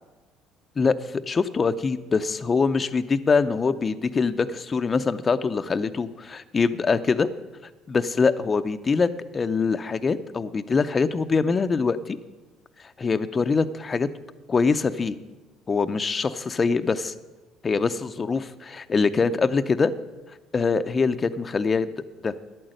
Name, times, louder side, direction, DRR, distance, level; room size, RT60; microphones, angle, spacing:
voice 1, 0.8-7.3 7.9-9.1 9.3-12.2 13.0-14.1 14.5-15.2 15.7-17.1 17.6-19.9 20.5-21.9 22.2-22.3, left 4 dB, 30° left, 10 dB, 0.5 m, -23 dB
11.0 x 8.9 x 6.4 m, 1.2 s
supercardioid pair, 80°, 0 cm